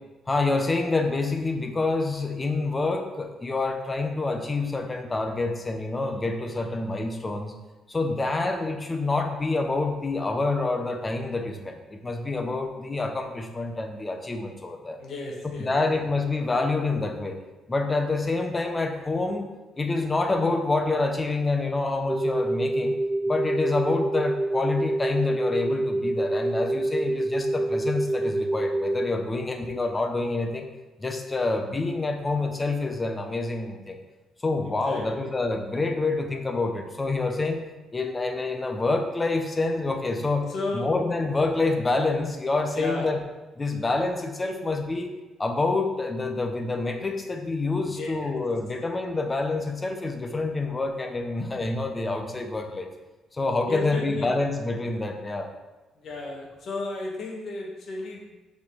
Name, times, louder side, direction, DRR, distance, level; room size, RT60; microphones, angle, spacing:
voice 1, 0.3-7.5 7.9-15.0 15.6-17.4 17.7-19.4 19.8-22.9 23.3-30.7 31.0-34.0 34.4-37.6 37.9-43.2 43.6-45.1 45.4-52.9 53.3-55.5, left 3 dB, 25° left, 5 dB, 0.9 m, -27 dB
voice 2, 15.0-15.7 34.9-35.3 40.5-41.0 42.7-43.1 48.0-48.4 53.7-54.4 56.0-58.3, left 2 dB, 65° left, -2 dB, 1.7 m, -33 dB
sound 1, 22.1-29.1, right 1 dB, 35° right, 0.6 m, -26 dB
5.6 x 4.5 x 4.8 m, 1.1 s
cardioid pair, 90°, 0 cm